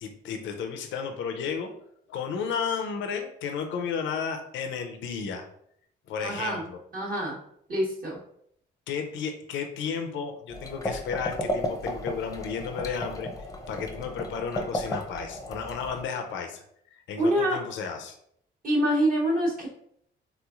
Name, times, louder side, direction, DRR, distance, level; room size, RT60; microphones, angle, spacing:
voice 1, 0.0-1.7 2.1-5.5 6.1-6.8 8.9-13.3 13.7-16.6 16.9-18.2, left 6 dB, 75° left, 5 dB, 0.5 m, -33 dB
voice 2, 6.2-6.7 6.9-7.4 7.7-8.2 17.2-17.6 18.6-19.7, equal, 45° right, -4 dB, 1.0 m, -25 dB
sound 1, 10.5-16.0, left 1 dB, 15° left, 0.5 m, -34 dB
3.4 x 3.0 x 2.4 m, 0.70 s
cardioid pair, 90°, 20 cm